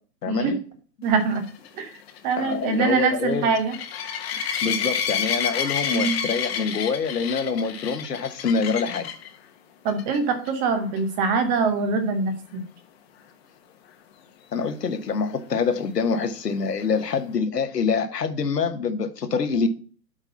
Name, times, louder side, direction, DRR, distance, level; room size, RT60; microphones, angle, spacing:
voice 1, 0.2-0.6 2.4-3.5 4.6-9.1 14.5-19.7, left 5 dB, 70° left, 1.4 m, -25 dB
voice 2, 1.0-1.4 1.7-1.9 2.2-3.7 5.9-6.2 9.8-12.6, right 4 dB, 15° right, 0.8 m, -23 dB
sound 1, 1.3-9.3 9.9-10.2 10.5-10.6 11.0-11.1 14.6-14.7, left 7 dB, 35° left, 1.1 m, -29 dB
8.0 x 3.8 x 5.6 m
figure-of-eight pair, 130°, 50 cm